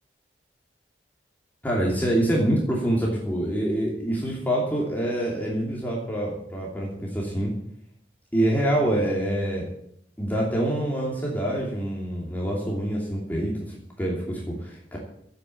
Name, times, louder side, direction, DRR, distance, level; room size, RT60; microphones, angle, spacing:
voice 1, 1.6-7.5 8.3-9.7 10.2-15.0, right 1 dB, 10° left, -3 dB, 2.8 m, -26 dB
13.0 x 8.7 x 8.5 m, 0.70 s
head